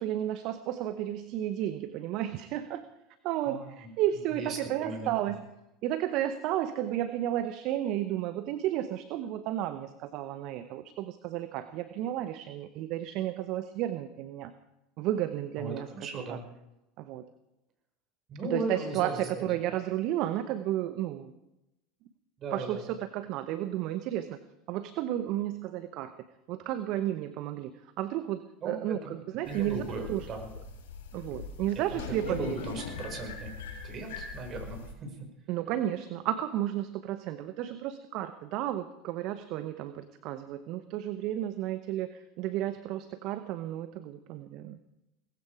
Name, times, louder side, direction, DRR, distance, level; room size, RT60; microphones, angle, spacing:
voice 1, 0.0-2.8 3.2-5.4 5.8-14.5 15.0-16.4 17.0-17.3 18.5-21.3 22.5-24.4 24.7-26.1 26.5-30.3 31.1-32.6 35.5-44.8, right 12 dB, 55° right, 11 dB, 1.0 m, -33 dB
voice 2, 4.3-5.1 15.6-16.5 18.3-19.5 22.4-22.8 28.6-29.1 29.5-30.5 31.9-33.5 33.8-35.1, right 2 dB, 40° right, 3 dB, 5.5 m, -37 dB
sound 1, 29.4-34.9, left 5 dB, 75° left, 6.7 m, -42 dB
19.0 x 15.5 x 4.9 m, 0.90 s
hypercardioid pair, 80°, 0 cm